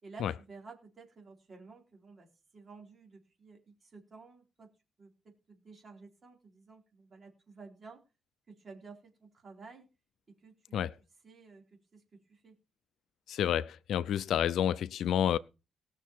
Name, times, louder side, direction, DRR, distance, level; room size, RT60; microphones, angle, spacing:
voice 1, 0.0-4.7 5.0-8.0 8.5-9.9 10.3-10.8 11.2-11.6 11.9-12.6, right 4 dB, 30° right, 4.0 m, -53 dB
voice 2, 13.3-15.4, left 10 dB, 65° left, 0.5 m, -29 dB
19.0 x 6.6 x 4.6 m
cardioid pair, 155°, 0 cm